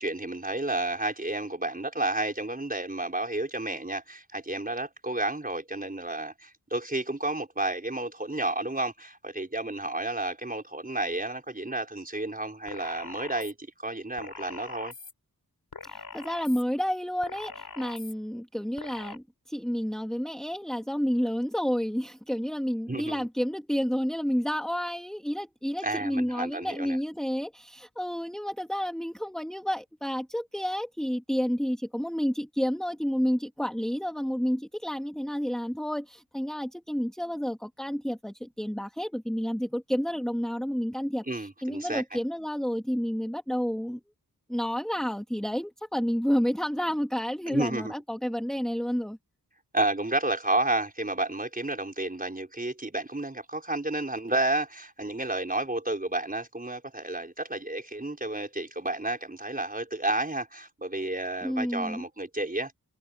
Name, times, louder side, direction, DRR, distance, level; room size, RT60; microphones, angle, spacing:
voice 1, 0.0-14.9 22.9-23.3 25.8-27.0 41.2-42.2 47.5-47.9 49.7-62.7, right 2 dB, 20° right, 5.1 m, -31 dB
sound 1, 12.7-13.5 14.2-15.1 15.7-16.6 17.2-18.1 18.8-19.2, left 4 dB, 65° left, 3.6 m, -43 dB
voice 2, 15.9-41.2 41.6-44.0 44.5-49.2 61.4-62.0, equal, ahead, 2.1 m, -30 dB
wide cardioid pair, 85°, 38 cm